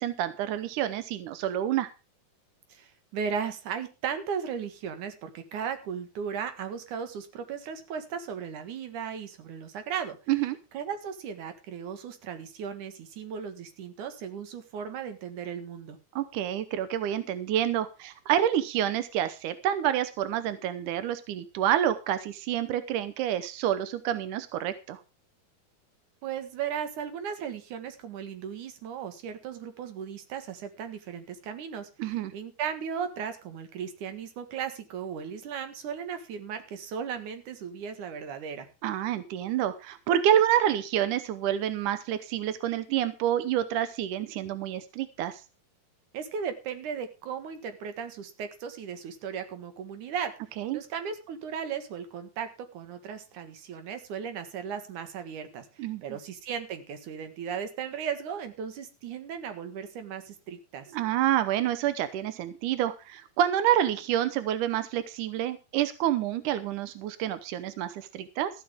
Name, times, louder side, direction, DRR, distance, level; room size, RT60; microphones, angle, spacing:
voice 1, 0.0-1.9 10.3-10.6 16.2-25.0 32.0-32.3 38.8-45.4 50.6-50.8 55.8-56.0 60.9-68.5, right 11 dB, 75° right, 12 dB, 1.9 m, -28 dB
voice 2, 2.7-10.2 10.7-16.0 26.2-38.7 46.1-50.3 50.7-60.9, right 7 dB, 55° right, 9 dB, 2.8 m, -36 dB
14.0 x 12.5 x 3.6 m, 0.29 s
omnidirectional pair, 4.7 m